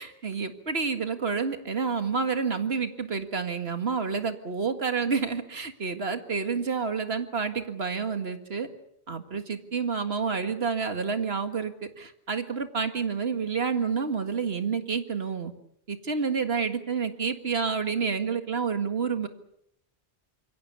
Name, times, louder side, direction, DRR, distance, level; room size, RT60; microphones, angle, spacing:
voice 1, 0.0-8.7 9.1-15.5 15.9-19.3, right 5 dB, 65° right, 8 dB, 2.1 m, -29 dB
26.5 x 22.5 x 7.0 m, 0.74 s
omnidirectional pair, 1.1 m